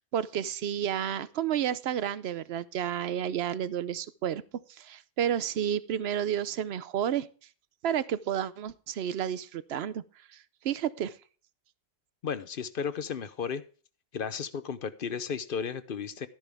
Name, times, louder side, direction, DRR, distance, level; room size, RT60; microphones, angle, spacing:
voice 1, 0.1-4.4 4.7-7.3 7.8-10.0 10.3-10.4 10.6-11.2, right 9 dB, 75° right, 17 dB, 0.9 m, -31 dB
voice 2, 12.2-13.6 14.1-16.3, left 6 dB, 60° left, 13 dB, 0.9 m, -34 dB
13.5 x 10.5 x 3.5 m, 0.38 s
omnidirectional pair, 1.1 m